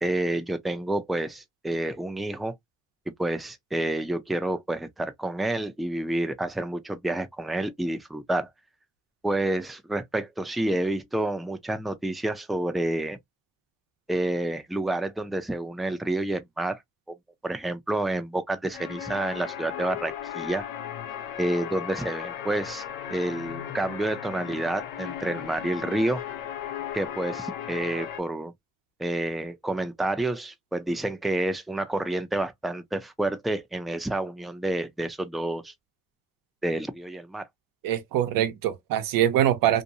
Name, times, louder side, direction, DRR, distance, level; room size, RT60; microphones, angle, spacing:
voice 1, 0.0-2.5 3.2-8.5 9.2-13.2 14.1-16.8 17.1-17.2 17.4-20.6 21.4-22.8 23.1-26.2 26.9-28.5 29.0-35.7 36.6-37.5, right 1 dB, ahead, 0.5 m, -29 dB
sound 1, 18.7-28.2, left 10 dB, 85° left, 0.7 m, -36 dB
voice 2, 37.8-39.8, right 11 dB, 85° right, 0.8 m, -23 dB
2.7 x 2.1 x 2.7 m
cardioid pair, 85°, 33 cm